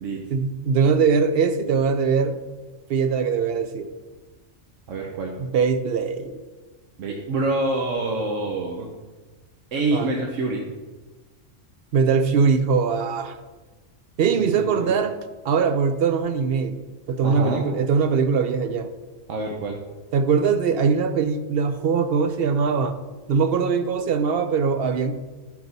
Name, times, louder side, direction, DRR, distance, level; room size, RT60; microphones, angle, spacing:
voice 1, 0.3-2.4 2.9-3.9 5.4-6.4 9.9-10.1 11.9-13.4 14.2-15.2 15.4-16.8 17.1-18.9 20.1-23.0 23.3-25.1, right 5 dB, 65° right, 10 dB, 0.7 m, -21 dB
voice 2, 4.9-5.4 7.0-8.9 9.7-10.7 14.4-14.9 17.2-17.6 19.3-19.8, right 2 dB, 85° right, 0 dB, 1.2 m, -26 dB
11.0 x 4.6 x 4.0 m, 1.2 s
omnidirectional pair, 1.3 m